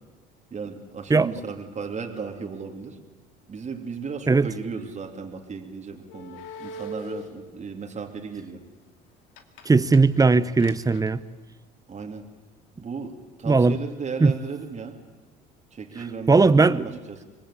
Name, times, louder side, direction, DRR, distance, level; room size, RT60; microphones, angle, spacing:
voice 1, 0.5-3.0 3.5-8.6 11.9-12.3 12.8-15.0 15.7-17.2, right 5 dB, 35° right, 3 dB, 3.0 m, -35 dB
sound 1, 6.1-7.5 9.4-9.7 9.9-11.1, left 1 dB, 75° left, 2.4 m, -39 dB
voice 2, 9.7-11.2 13.5-13.8 14.2-14.3 16.3-16.8, right 4 dB, 20° right, 17 dB, 0.9 m, -18 dB
25.0 x 20.5 x 8.4 m, 1.2 s
supercardioid pair, 80°, 20 cm